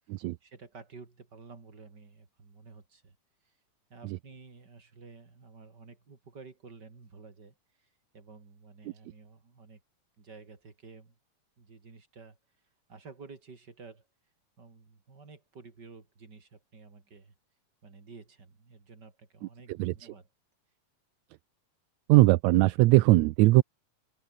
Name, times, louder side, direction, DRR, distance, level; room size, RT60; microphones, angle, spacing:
voice 1, 0.4-3.2 3.4-3.5 3.9-7.9 8.1-9.8 10.2-11.2 11.6-12.4 12.9-14.1 14.6-17.3 17.8-20.3, right 4 dB, 30° right, 4.0 m, -51 dB
voice 2, 22.1-23.6, right 19 dB, 75° right, 1.7 m, -20 dB
open air
omnidirectional pair, 3.7 m